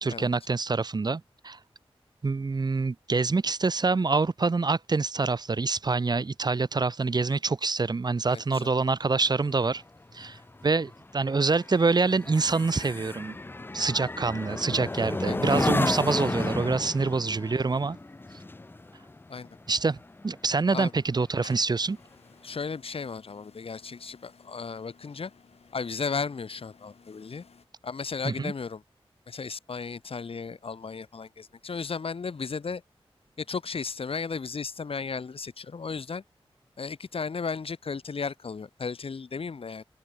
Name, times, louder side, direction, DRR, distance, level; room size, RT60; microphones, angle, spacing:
voice 1, 0.0-1.6 2.2-9.8 10.1-13.4 13.7-18.0 19.7-20.0 20.2-22.0 28.2-28.5, right 4 dB, 45° right, 0.7 m, -26 dB
voice 2, 8.3-8.7 15.2-15.4 19.3-19.6 20.7-20.9 22.4-25.3 25.7-27.4 27.8-28.8 29.3-32.8 33.4-36.2 36.8-39.8, left 5 dB, 65° left, 1.3 m, -35 dB
sound 1, 9.2-20.9 21.3-21.6, left 2 dB, 20° left, 0.5 m, -33 dB
sound 2, 21.3-27.7, left 5 dB, 90° left, 7.4 m, -57 dB
wide cardioid pair, 80°, 10 cm